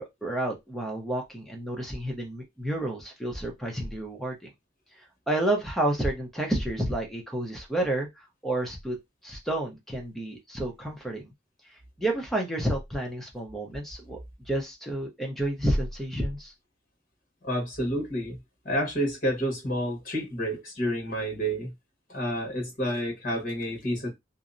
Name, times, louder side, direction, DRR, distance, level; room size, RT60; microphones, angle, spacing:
voice 1, 0.0-4.5 5.3-9.0 9.2-11.3 12.0-14.2 14.5-16.5, right 1 dB, ahead, 0.5 m, -30 dB
voice 2, 17.4-18.4 18.6-21.7 22.1-24.1, equal, 45° left, 1.1 m, -29 dB
2.6 x 2.0 x 2.4 m
head